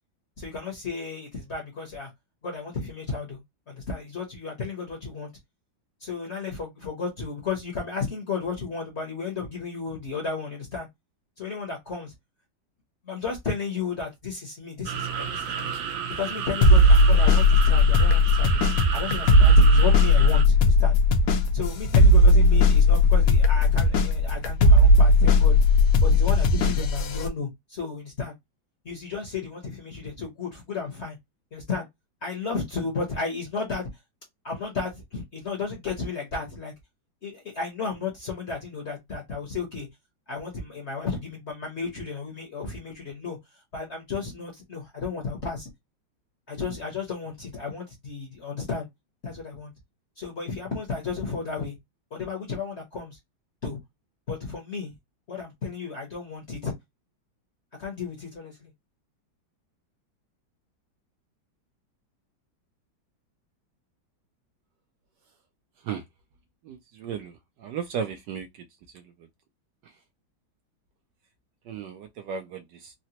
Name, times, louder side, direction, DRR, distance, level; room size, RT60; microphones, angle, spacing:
voice 1, 0.4-2.1 2.4-3.4 3.7-5.3 6.0-10.9 11.4-12.1 13.0-15.7 16.1-18.6 18.9-21.0 21.5-25.6 26.0-28.3 28.8-31.2 31.5-31.9 32.2-33.9 34.4-36.7 37.2-39.9 40.3-43.4 43.7-45.7 46.5-48.9 49.2-49.7 50.2-51.8 52.1-53.2 53.6-53.8 54.3-55.0 55.3-56.7 57.8-58.7, left 5 dB, 45° left, 0.9 m, -33 dB
sound 1, 14.9-20.4, right 7 dB, 90° right, 1.4 m, -32 dB
sound 2, 16.6-27.3, left 1 dB, 70° left, 1.1 m, -17 dB
voice 2, 66.7-67.3 67.6-68.5 71.7-72.9, right 7 dB, 75° right, 1.1 m, -34 dB
3.9 x 2.1 x 2.7 m
omnidirectional pair, 2.1 m